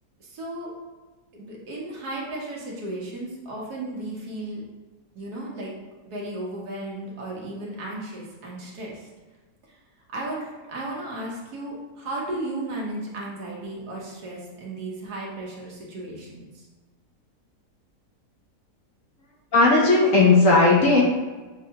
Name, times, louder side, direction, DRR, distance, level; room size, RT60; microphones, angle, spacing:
voice 1, 0.2-0.7 1.3-4.6 5.1-5.7 6.1-9.1 9.7-9.8 10.1-16.7, right 1 dB, 65° right, -3 dB, 1.4 m, -34 dB
voice 2, 19.5-21.0, left 3 dB, 65° left, -3 dB, 0.9 m, -16 dB
6.4 x 2.2 x 2.8 m, 1.3 s
omnidirectional pair, 1.8 m